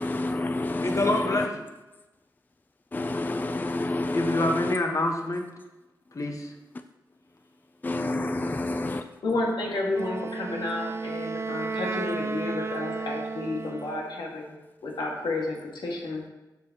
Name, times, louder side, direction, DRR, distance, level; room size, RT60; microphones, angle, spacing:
voice 1, 0.0-1.5 2.9-4.7 7.8-9.0, left 2 dB, 25° left, 9 dB, 0.4 m, -29 dB
voice 2, 0.8-1.7 4.1-5.5 6.1-6.5, left 2 dB, 45° left, 3 dB, 1.3 m, -26 dB
voice 3, 9.2-14.6 14.8-16.3, left 2 dB, 85° left, -2 dB, 1.9 m, -31 dB
Wind instrument woodwind instrument, 9.9-14.1, right 4 dB, 35° right, 0.5 m, -33 dB
13.0 x 4.8 x 3.0 m, 1.0 s
cardioid pair, 55°, 8 cm